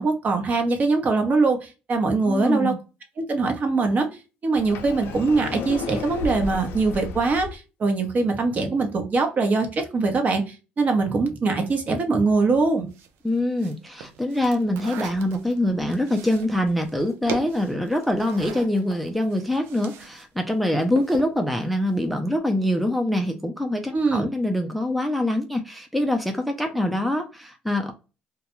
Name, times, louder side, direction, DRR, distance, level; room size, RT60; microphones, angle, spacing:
voice 1, 0.0-2.7 3.2-4.1 4.4-12.9 23.9-24.3, right 3 dB, 40° right, 5 dB, 0.8 m, -22 dB
voice 2, 2.2-2.8 13.2-27.9, left 1 dB, ahead, 4 dB, 0.4 m, -24 dB
Sliding door, 4.6-7.6, left 4 dB, 75° left, 0.4 m, -33 dB
sound 1, 12.9-20.2 20.5-21.4, right 7 dB, 80° right, 0.4 m, -39 dB
2.3 x 2.1 x 2.9 m, 0.31 s
supercardioid pair, 85°, 4 cm